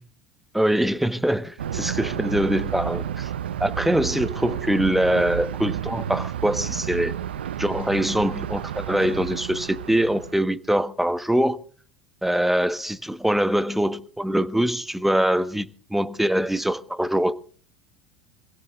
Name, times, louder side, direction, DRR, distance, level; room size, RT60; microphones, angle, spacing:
voice 1, 0.5-3.3 3.6-7.1 7.6-11.6 12.2-17.3, right 1 dB, 5° right, 1.2 m, -23 dB
Thunder, 1.6-10.4, right 10 dB, 80° right, 0.7 m, -31 dB
25.5 x 17.0 x 2.4 m
hypercardioid pair, 70°, 6 cm